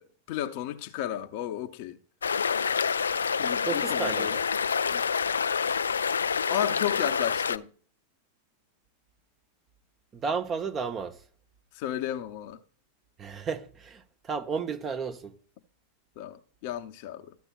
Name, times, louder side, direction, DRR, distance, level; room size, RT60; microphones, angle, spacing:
voice 1, 0.0-2.0 3.4-4.4 4.9-5.0 6.5-7.7 11.7-12.6 16.2-17.3, left 11 dB, 45° left, 0.8 m, -33 dB
sound 1, 2.2-7.6, left 6 dB, 70° left, 0.3 m, -27 dB
voice 2, 3.6-4.4 10.1-11.2 13.2-15.4, right 5 dB, 25° right, 0.9 m, -33 dB
13.5 x 8.8 x 2.4 m
figure-of-eight pair, 90°, 0 cm